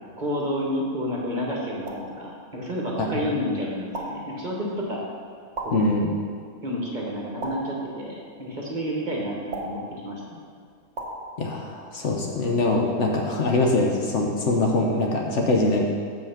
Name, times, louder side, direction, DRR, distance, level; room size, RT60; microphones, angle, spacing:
voice 1, 0.2-5.0 5.6-6.0 6.6-10.4, equal, 35° right, -3 dB, 1.1 m, -30 dB
sound 1, 1.9-2.2 3.9-4.3 5.6-6.0 7.4-7.9 9.5-9.9 11.0-11.3, right 2 dB, 55° right, 1.2 m, -34 dB
voice 2, 5.7-6.1 11.4-15.9, left 2 dB, 60° left, 0 dB, 1.1 m, -23 dB
7.1 x 5.6 x 5.6 m, 2.1 s
omnidirectional pair, 1.5 m